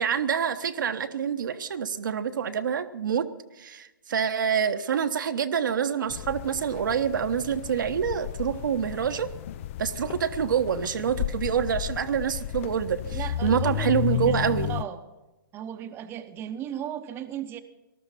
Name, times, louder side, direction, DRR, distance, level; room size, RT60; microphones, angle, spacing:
voice 1, 0.0-3.2 3.6-9.3 9.8-14.7, right 7 dB, 60° right, 7 dB, 1.2 m, -26 dB
sound 1, 6.1-14.8, left 13 dB, 35° left, 0.5 m, -33 dB
voice 2, 13.1-15.0 15.5-17.6, right 10 dB, 20° right, 7 dB, 1.0 m, -36 dB
19.0 x 13.0 x 5.7 m, 1.0 s
figure-of-eight pair, 130°, 12 cm